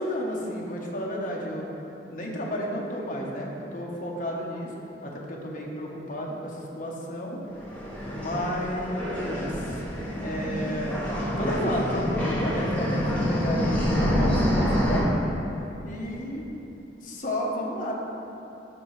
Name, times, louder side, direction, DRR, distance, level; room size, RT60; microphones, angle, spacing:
voice 1, 0.0-1.7 2.1-4.7 5.0-7.4 8.1-9.8 10.2-11.1 11.4-15.1 15.8-16.5 17.0-17.9, left 1 dB, 50° left, -2 dB, 1.0 m, -32 dB
sound 1, 7.5-15.0, equal, 10° left, 1.3 m, -27 dB
12.5 x 4.2 x 3.2 m, 2.9 s
head